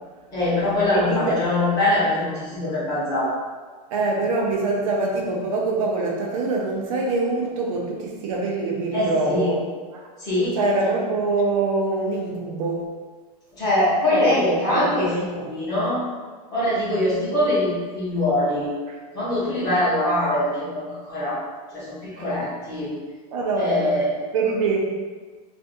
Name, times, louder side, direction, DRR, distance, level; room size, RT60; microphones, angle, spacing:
voice 1, 0.3-3.3 8.9-9.5 10.2-10.6 13.6-16.0 16.5-18.8 19.1-21.4 21.7-22.9 23.5-24.1, left 1 dB, 15° left, -9 dB, 0.9 m, -23 dB
voice 2, 0.9-1.4 3.9-9.6 9.9-10.0 10.6-12.8 14.1-14.8 15.1-15.5 18.9-19.0 22.1-22.3 23.3-24.0 24.3-24.9, right 3 dB, 50° right, -1 dB, 0.5 m, -24 dB
2.6 x 2.5 x 3.7 m, 1.4 s
supercardioid pair, 180°, 21 cm